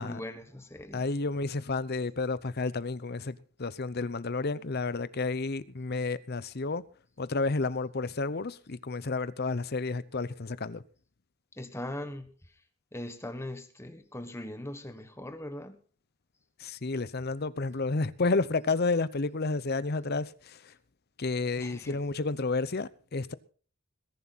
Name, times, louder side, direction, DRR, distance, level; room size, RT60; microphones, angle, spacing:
voice 1, 0.0-1.0 11.6-12.3 12.9-15.8 21.6-22.0, left 1 dB, 10° left, 1.4 m, -40 dB
voice 2, 0.9-6.8 7.2-10.8 16.6-20.7 21.2-23.3, left 3 dB, 45° left, 0.7 m, -31 dB
20.5 x 11.0 x 4.1 m
head